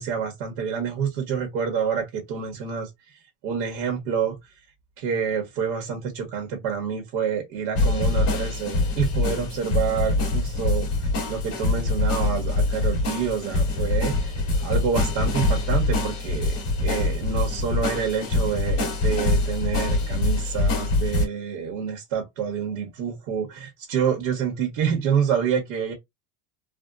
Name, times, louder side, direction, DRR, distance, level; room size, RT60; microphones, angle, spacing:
voice 1, 0.0-4.4 5.0-10.9 11.2-25.9, right 7 dB, 60° right, 1.3 m, -28 dB
sound 1, 7.8-21.3, left 2 dB, 35° left, 1.8 m, -24 dB
3.5 x 2.3 x 2.5 m
cardioid pair, 175°, 37 cm